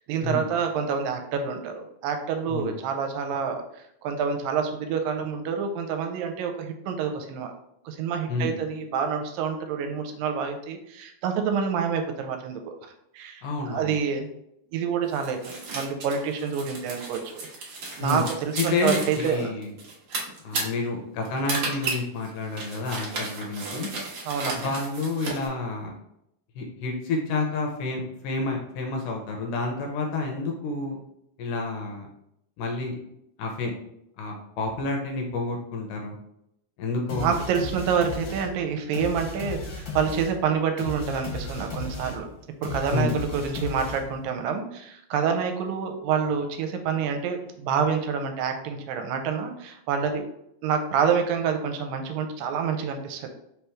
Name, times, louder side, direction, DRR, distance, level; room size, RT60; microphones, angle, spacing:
voice 1, 0.1-7.5 7.9-14.3 14.7-17.2 17.6-17.7 18.0-19.5 24.3-24.7 37.1-42.3 42.6-50.2 50.6-53.3, right 6 dB, 85° right, 5 dB, 2.3 m, -27 dB
voice 2, 13.4-14.0 18.0-19.7 20.4-23.9 24.5-25.9 26.6-31.0 31.4-32.1 32.6-33.0 33.4-33.7 34.2-36.2 36.8-37.4 42.9-43.2, left 3 dB, 80° left, 1 dB, 2.1 m, -29 dB
sound 1, 15.1-25.5, right 3 dB, 60° right, 1.5 m, -34 dB
sound 2, 37.1-44.3, left 3 dB, 50° left, 2.1 m, -35 dB
5.0 x 3.4 x 3.0 m, 0.77 s
omnidirectional pair, 4.0 m